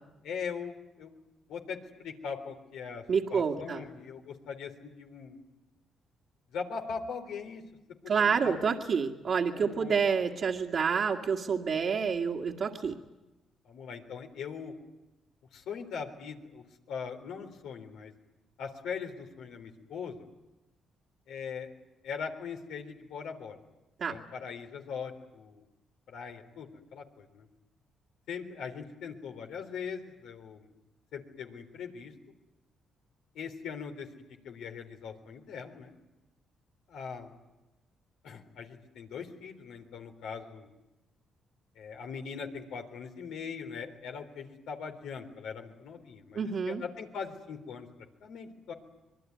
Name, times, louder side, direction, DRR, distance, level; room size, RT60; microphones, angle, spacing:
voice 1, 0.2-1.1 1.5-3.0 3.3-5.4 6.5-7.6 8.0-8.6 9.5-9.9 13.7-14.7 15.5-18.1 18.6-20.3 21.3-21.7 22.0-23.6 24.1-25.6 26.1-27.5 28.3-30.7 31.1-32.1 33.4-34.1 34.4-35.9 36.9-37.3 38.2-40.7 41.8-47.9 48.2-48.7, left 6 dB, 80° left, 4 dB, 3.6 m, -40 dB
voice 2, 3.1-3.8 8.1-13.0 24.0-24.2 46.3-46.8, right 6 dB, 55° right, -1 dB, 1.9 m, -28 dB
25.5 x 22.0 x 9.5 m, 1.0 s
cardioid pair, 90°, 0 cm